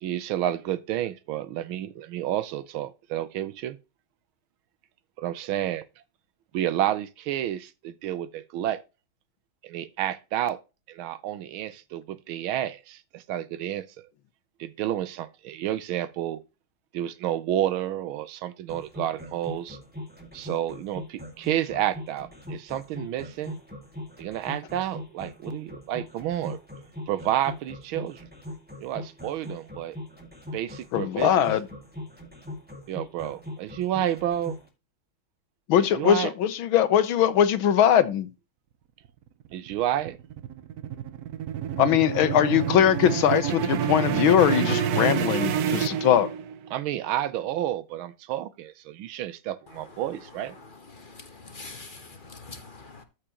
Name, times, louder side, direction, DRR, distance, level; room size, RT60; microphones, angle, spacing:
voice 1, 0.0-3.8 5.2-5.8 6.5-8.8 9.6-10.6 10.9-14.1 14.6-16.4 16.9-19.8 20.3-23.6 24.2-26.6 27.1-28.2 28.8-30.0 30.5-31.4 32.9-34.6 35.8-36.3 39.5-40.2 46.7-50.5, right 12 dB, 85° right, 1.5 m, -30 dB
sound 1, 18.7-34.7, left 1 dB, 5° right, 1.8 m, -40 dB
voice 2, 30.9-31.6 35.7-38.3 41.8-46.3, left 10 dB, 80° left, 1.7 m, -21 dB
sound 2, 39.5-46.7, right 9 dB, 65° right, 1.0 m, -28 dB
voice 3, 50.5-53.0, left 3 dB, 35° left, 0.9 m, -45 dB
13.5 x 5.0 x 2.9 m
omnidirectional pair, 2.2 m